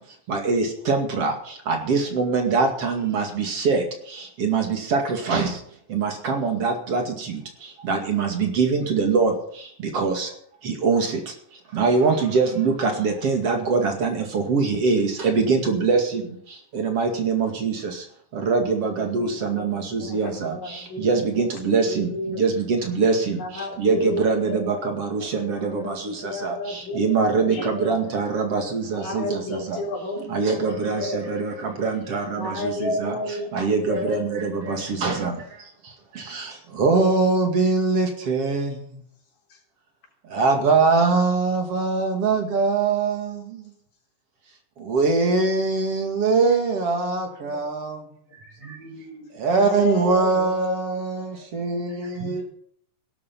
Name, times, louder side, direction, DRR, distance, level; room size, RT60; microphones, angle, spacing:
voice 1, 0.3-1.3 1.7-3.8 4.4-5.5 5.9-7.4 7.8-9.3 9.9-10.3 10.6-11.1 11.7-16.2 16.7-17.9 18.3-20.6 21.0-23.4 23.8-29.8 30.3-33.2 33.5-35.4 36.3-36.5 36.8-38.7 40.3-43.4 44.9-48.0 49.4-52.5, right 4 dB, 50° right, 3 dB, 3.1 m, -23 dB
voice 2, 19.2-19.6 20.0-21.1 21.6-22.4 23.4-24.9 25.4-28.0 29.0-31.2 32.4-33.5 33.9-34.2 34.6-34.8 47.5-47.6 49.6-50.8 51.1-51.2, left 2 dB, 80° left, -1 dB, 5.6 m, -32 dB
voice 3, 48.3-49.4 51.6-52.5, right 4 dB, 75° right, 3 dB, 6.0 m, -43 dB
16.5 x 12.5 x 5.5 m, 0.63 s
omnidirectional pair, 3.7 m